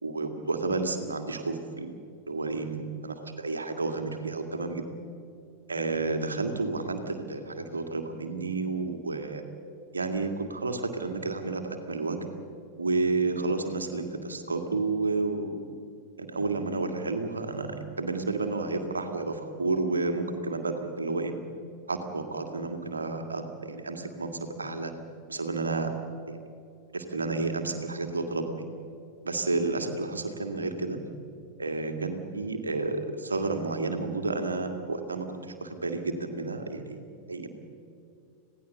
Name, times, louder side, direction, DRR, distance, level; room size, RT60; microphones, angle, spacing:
voice 1, 0.0-1.9 2.3-4.8 5.7-9.4 9.9-12.3 12.8-15.6 16.2-21.4 21.9-24.9 25.3-25.9 26.2-26.4 26.9-28.7 29.2-31.0 31.6-37.0 37.3-37.5, right 3 dB, 75° right, 5 dB, 2.1 m, -31 dB
26.5 x 17.5 x 6.7 m, 2.5 s
figure-of-eight pair, 90°, 0 cm